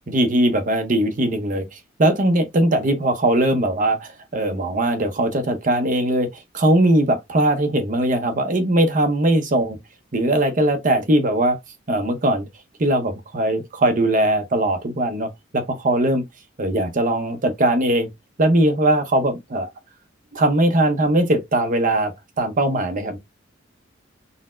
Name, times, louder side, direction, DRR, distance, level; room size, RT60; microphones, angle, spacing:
voice 1, 0.1-6.3 6.5-9.8 10.1-11.6 11.9-12.5 12.8-16.3 16.6-18.1 18.4-19.7 20.3-22.1 22.4-23.2, right 1 dB, 40° right, 0.7 m, -20 dB
4.0 x 2.1 x 2.5 m
head